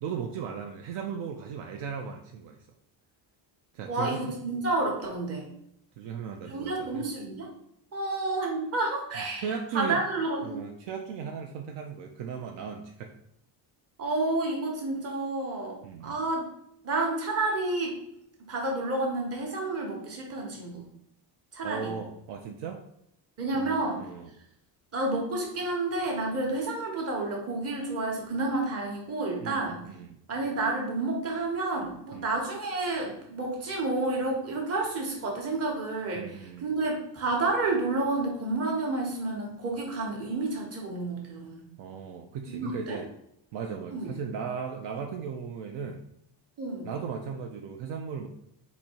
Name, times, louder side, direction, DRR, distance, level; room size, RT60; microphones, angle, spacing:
voice 1, 0.0-2.7 3.7-4.3 6.0-7.0 9.4-10.0 10.4-13.1 15.8-16.2 21.6-22.8 23.5-24.3 29.4-30.2 32.1-32.3 36.1-36.7 41.8-43.1 43.5-46.0 46.8-48.3, right 6 dB, 70° right, 3 dB, 0.6 m, -37 dB
voice 2, 3.9-5.5 6.5-7.5 7.9-9.5 9.7-10.5 14.0-16.4 16.8-18.0 18.4-20.8 21.5-21.9 23.4-24.1 24.9-29.8 30.3-41.7 42.5-43.0 43.9-44.1 46.6-46.9, right 2 dB, 30° right, 0 dB, 1.1 m, -30 dB
4.2 x 2.7 x 4.3 m, 0.74 s
cardioid pair, 175°, 45 cm